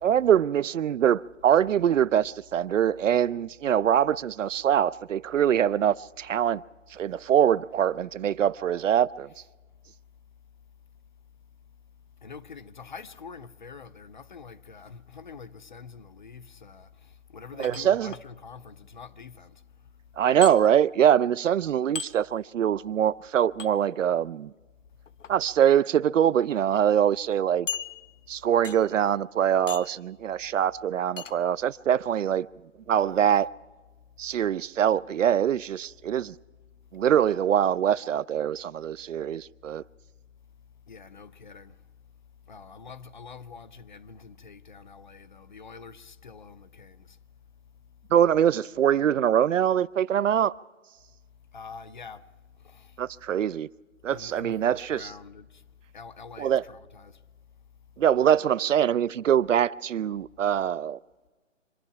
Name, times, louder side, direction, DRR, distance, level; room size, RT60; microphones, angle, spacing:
voice 1, 0.0-6.6 6.9-9.3 17.6-18.1 20.2-24.5 25.3-27.7 28.3-32.5 32.9-33.5 34.2-36.4 36.9-39.8 48.1-50.5 53.0-53.7 54.0-55.1 56.4-56.6 58.0-61.0, right 9 dB, 75° right, 0.5 m, -23 dB
voice 2, 12.2-19.6 40.9-41.8 42.5-47.2 51.5-52.3 52.5-53.0 54.1-55.6 55.9-57.2, left 5 dB, 40° left, 0.5 m, -45 dB
sound 1, 17.6-18.2 20.4-20.6 22.0-22.1 23.6-23.7 25.1-25.3 26.1-26.2 26.5-26.6 27.7-28.3 28.6-29.0 29.7-30.0 31.2-31.4, left 6 dB, 70° left, 1.0 m, -36 dB
25.5 x 9.9 x 5.7 m
figure-of-eight pair, 155°, 39 cm